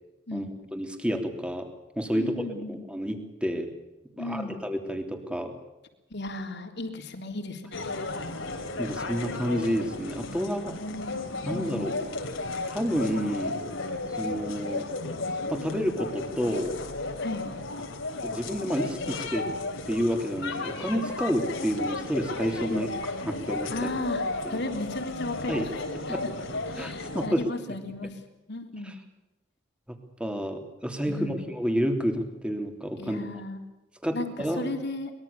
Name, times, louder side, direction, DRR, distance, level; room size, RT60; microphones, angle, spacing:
voice 1, 0.7-1.7 2.0-3.7 4.2-5.6 8.8-10.8 11.5-11.9 12.7-13.6 14.1-14.9 15.5-16.8 18.2-19.5 19.9-23.7 24.4-24.6 25.5-25.7 25.9-26.2 26.8-27.4 28.0-28.1 28.8-28.9 29.9-33.2 34.0-34.7, equal, 5° right, 5 dB, 3.3 m, -30 dB
voice 2, 2.1-2.8 4.2-4.6 6.1-7.9 10.8-11.2 11.5-11.9 17.2-17.4 22.7-22.9 23.7-25.7 26.1-26.3 26.7-28.2 28.5-29.0 31.1-31.5 33.0-33.6 34.1-35.1, left 2 dB, 60° left, 5 dB, 3.5 m, -35 dB
sound 1, 7.7-27.3, left 3 dB, 75° left, 3.5 m, -34 dB
23.5 x 21.5 x 7.0 m, 0.98 s
head